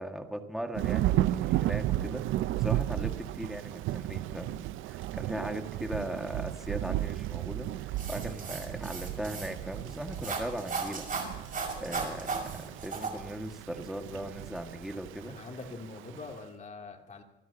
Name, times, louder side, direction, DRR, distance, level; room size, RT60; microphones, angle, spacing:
voice 1, 0.0-11.4 11.7-15.4, right 1 dB, ahead, 4 dB, 1.9 m, -39 dB
Thunder / Rain, 0.7-16.3, right 14 dB, 85° right, 0.5 m, -34 dB
sound 1, 8.0-13.1, right 4 dB, 45° right, 5.8 m, -37 dB
voice 2, 15.3-17.2, left 4 dB, 40° left, 1 dB, 3.0 m, -44 dB
27.0 x 16.0 x 2.9 m, 0.93 s
cardioid pair, 90°, 20 cm